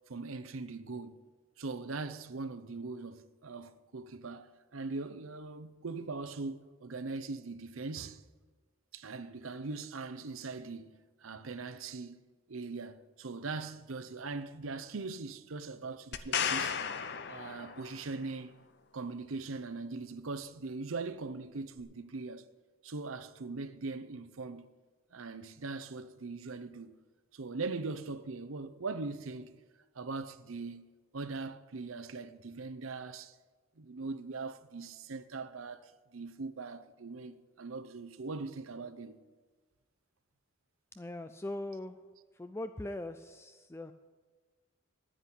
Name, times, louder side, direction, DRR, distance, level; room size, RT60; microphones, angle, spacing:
voice 1, 0.1-1.2 1.6-8.2 8.9-12.2 12.5-16.8 17.3-18.5 18.9-22.5 22.8-24.7 25.1-27.0 27.3-29.5 29.9-30.9 31.1-33.3 33.8-39.2, right 3 dB, 80° right, 0.7 m, -41 dB
sound 1, 16.1-18.1 21.8-21.9, left 7 dB, 55° left, 0.7 m, -34 dB
voice 2, 40.9-42.0 42.3-43.9, left 1 dB, 10° left, 0.3 m, -41 dB
10.0 x 10.0 x 8.8 m
head